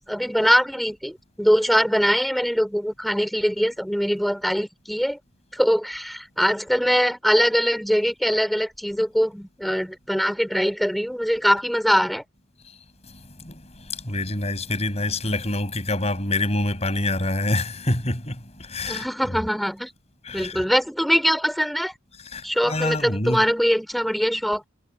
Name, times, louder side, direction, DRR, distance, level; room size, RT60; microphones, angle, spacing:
voice 1, 0.1-5.2 5.5-12.2 18.9-19.9 20.3-21.9 22.4-24.6, equal, ahead, 4.6 m, -22 dB
voice 2, 13.1-19.1 20.2-20.6 22.2-23.4, left 2 dB, 30° left, 7.1 m, -27 dB
head